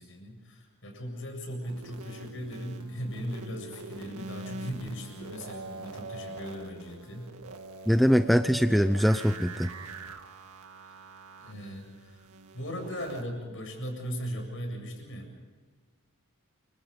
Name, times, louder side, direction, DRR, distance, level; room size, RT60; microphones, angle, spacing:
voice 1, 0.0-7.4 10.8-10.9 11.4-12.3 12.5-15.3, equal, 60° left, 4 dB, 7.6 m, -38 dB
sound 1, 1.7-13.2, right 3 dB, 85° right, 1.9 m, -44 dB
voice 2, 7.9-9.7, equal, ahead, 8 dB, 0.6 m, -22 dB
29.0 x 25.5 x 5.3 m, 1.4 s
head